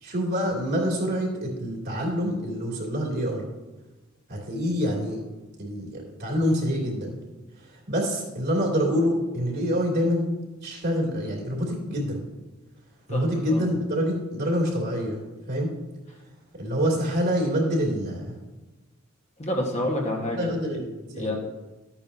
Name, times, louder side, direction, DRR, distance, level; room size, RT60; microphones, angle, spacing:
voice 1, 0.0-3.5 4.3-5.2 5.6-7.1 7.7-10.4 10.6-12.2 13.1-15.2 15.5-15.7 16.5-18.3 20.3-21.3, equal, 50° right, -2 dB, 2.8 m, -26 dB
voice 2, 13.1-13.6 19.4-20.5 21.1-21.4, left 1 dB, 30° left, -1 dB, 1.5 m, -28 dB
12.5 x 8.9 x 2.8 m, 1.1 s
head